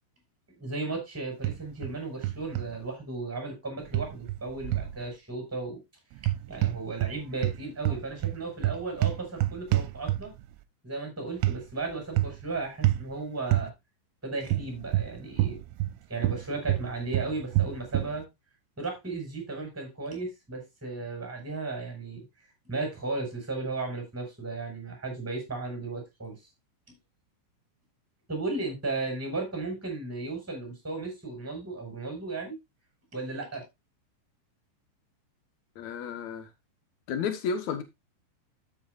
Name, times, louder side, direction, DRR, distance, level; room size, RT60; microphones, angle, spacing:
voice 1, 0.6-5.8 6.5-10.3 10.8-13.7 14.2-15.6 16.1-18.3 18.8-22.2 22.7-26.4 28.3-32.6 33.1-33.6, right 3 dB, 5° right, 5.0 m, -35 dB
sound 1, 1.4-1.9 2.2-2.7 3.9-5.0 6.2-7.2 7.4-10.5 11.4-11.6 12.2-12.5 12.8-13.1 13.5-13.7 14.5-16.0 16.2-18.2, right 15 dB, 80° right, 2.9 m, -27 dB
voice 2, 35.7-36.5 37.1-37.8, left 6 dB, 80° left, 1.6 m, -32 dB
13.0 x 8.1 x 2.5 m
omnidirectional pair, 5.5 m